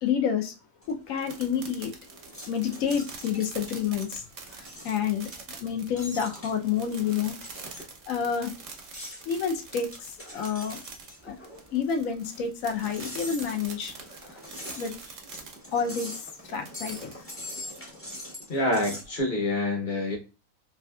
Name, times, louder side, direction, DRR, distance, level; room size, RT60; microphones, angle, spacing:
voice 1, 0.0-0.5 0.9-1.9 2.5-4.3 4.5-7.3 7.7-8.5 9.3-10.8 11.2-11.4 11.7-13.9 14.3-14.4 14.7-15.1 15.7-17.3, left 7 dB, 70° left, 0.9 m, -29 dB
sound 1, 0.8-19.1, left 1 dB, 15° left, 0.6 m, -43 dB
sound 2, 1.2-17.3, right 5 dB, 60° right, 0.9 m, -45 dB
voice 2, 18.5-20.2, left 1 dB, 35° left, 1.1 m, -26 dB
3.2 x 2.6 x 2.2 m
omnidirectional pair, 1.6 m